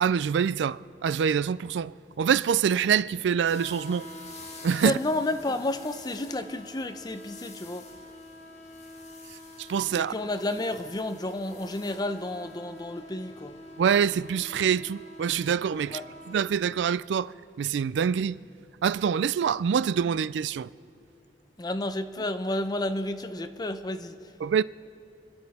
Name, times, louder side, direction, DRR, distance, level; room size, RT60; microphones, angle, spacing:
voice 1, 0.0-4.1 4.6-5.0 9.7-10.1 13.8-16.0 16.3-18.4 18.8-20.7 24.4-24.6, right 7 dB, 85° right, 0.3 m, -25 dB
sound 1, 3.4-16.5, left 2 dB, 40° left, 1.6 m, -46 dB
voice 2, 4.8-7.9 10.0-13.6 15.9-16.1 21.6-24.2, left 1 dB, 25° left, 0.7 m, -31 dB
29.5 x 11.0 x 4.2 m
head